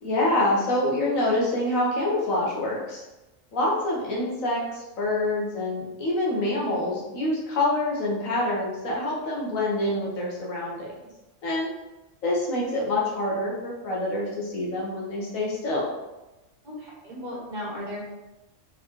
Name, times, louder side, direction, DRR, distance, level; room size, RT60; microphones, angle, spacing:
voice 1, 0.0-3.0 3.5-10.9 11.4-11.7 12.2-15.9, left 1 dB, 90° left, -4 dB, 1.5 m, -26 dB
voice 2, 16.6-18.0, left 1 dB, 40° right, -5 dB, 1.2 m, -35 dB
4.0 x 3.8 x 3.0 m, 1.0 s
omnidirectional pair, 1.4 m